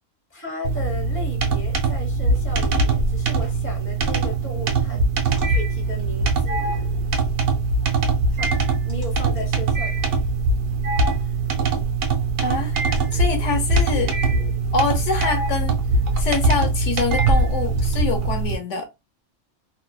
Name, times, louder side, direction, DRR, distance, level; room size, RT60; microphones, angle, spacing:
voice 1, 0.3-5.0 5.5-7.0 8.3-8.5 8.8-10.2 11.2-11.4, left 1 dB, 10° left, 0.8 m, -35 dB
sound 1, 0.6-18.6, right 3 dB, 70° right, 1.0 m, -22 dB
sound 2, 2.5-3.1 3.5-17.9, right 1 dB, 35° right, 0.9 m, -33 dB
voice 2, 12.4-12.8 13.1-14.2 14.7-15.8 16.2-18.9, left 4 dB, 70° left, 1.1 m, -25 dB
2.6 x 2.1 x 2.2 m
omnidirectional pair, 1.3 m